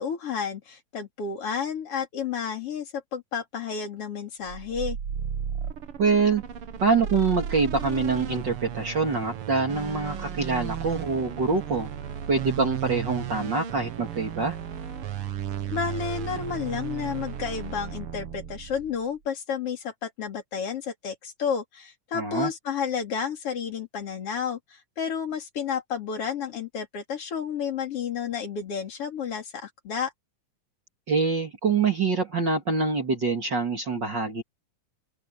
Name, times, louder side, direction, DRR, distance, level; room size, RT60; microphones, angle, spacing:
voice 1, 0.0-5.0 15.7-30.1, left 7 dB, 50° left, 3.5 m, -31 dB
sound 1, 4.4-19.0, right 8 dB, 55° right, 1.9 m, -34 dB
voice 2, 6.0-6.4 6.8-11.9 12.3-14.6 22.1-22.5 31.1-34.4, right 4 dB, 40° right, 2.6 m, -25 dB
open air
omnidirectional pair, 3.6 m